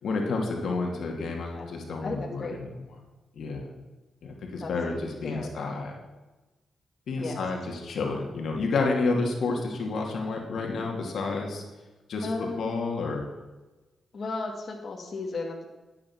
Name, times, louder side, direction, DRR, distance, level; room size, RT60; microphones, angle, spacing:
voice 1, 0.0-2.7 3.3-3.7 4.2-5.9 7.1-11.6 12.1-13.2, left 3 dB, 75° left, 1 dB, 2.5 m, -30 dB
voice 2, 2.0-2.6 4.6-4.7 5.2-5.5 7.2-7.4 12.2-12.8 14.1-15.6, left 3 dB, 50° left, 0 dB, 2.3 m, -34 dB
12.5 x 8.7 x 5.9 m, 1.1 s
cardioid pair, 70°, 0 cm